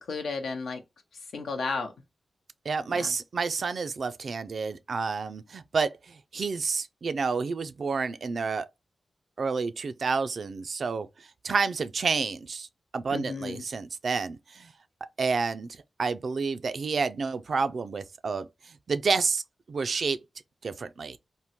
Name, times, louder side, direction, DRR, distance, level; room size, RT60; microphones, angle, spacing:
voice 1, 0.1-0.8 1.3-1.9 2.9-3.1 13.1-13.6, left 4 dB, 85° left, 0.7 m, -33 dB
voice 2, 2.7-8.7 9.4-12.7 12.9-14.7 15.2-19.4 19.7-20.2 20.6-21.2, right 4 dB, 65° right, 0.3 m, -29 dB
3.5 x 2.1 x 2.8 m
cardioid pair, 45°, 0 cm